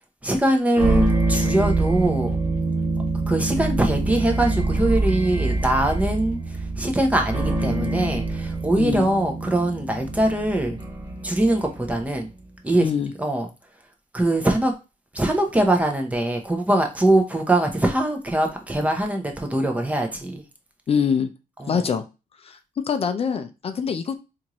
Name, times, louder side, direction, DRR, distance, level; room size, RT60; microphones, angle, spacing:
voice 1, 0.2-2.4 3.3-10.8 11.2-12.3 12.6-12.9 13.2-13.5 14.1-14.7 15.1-20.4 21.6-21.8, right 1 dB, 10° right, 0.7 m, -22 dB
sound 1, 0.8-12.1, right 2 dB, 30° right, 1.4 m, -25 dB
voice 2, 8.7-9.1 12.8-13.1 20.9-21.3 21.7-22.0 22.4-22.6 22.8-24.2, left 6 dB, 45° left, 0.4 m, -24 dB
4.4 x 2.5 x 2.9 m
wide cardioid pair, 155°, 15 cm